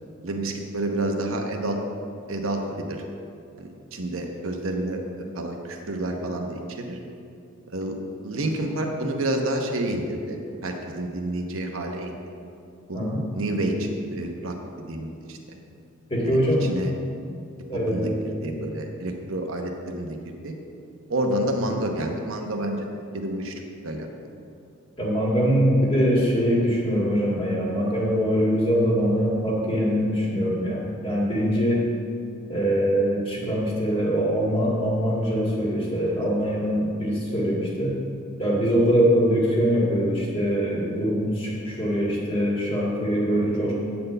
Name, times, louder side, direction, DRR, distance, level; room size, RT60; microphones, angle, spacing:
voice 1, 0.2-1.8 2.3-3.0 3.6-7.0 7.7-8.0 8.2-12.1 12.9-13.0 13.3-14.6 14.9-15.4 16.2-16.9 17.9-20.5 21.1-22.8 23.1-24.1 43.3-43.5, right 1 dB, 85° right, 2 dB, 1.0 m, -29 dB
voice 2, 16.1-16.7 17.7-18.6 25.0-31.9 32.5-38.0 38.4-43.7, equal, 25° left, -4 dB, 1.8 m, -23 dB
9.2 x 4.3 x 6.6 m, 2.4 s
head